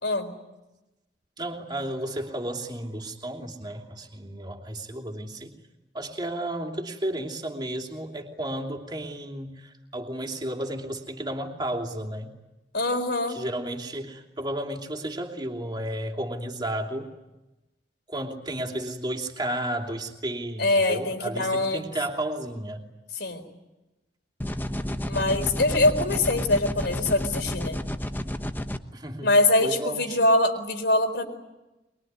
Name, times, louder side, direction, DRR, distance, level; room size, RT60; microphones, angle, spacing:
voice 1, 1.4-5.6 5.9-12.4 13.3-17.1 18.1-22.8 28.9-29.3 29.6-30.2, right 1 dB, 25° right, 3 dB, 3.1 m, -33 dB
voice 2, 12.7-13.4 20.6-21.8 23.1-23.5 25.0-27.8 29.2-31.3, left 2 dB, 65° left, 7 dB, 4.4 m, -23 dB
sound 1, 24.4-28.8, equal, 10° left, 1.2 m, -31 dB
23.5 x 23.0 x 9.7 m, 1.0 s
head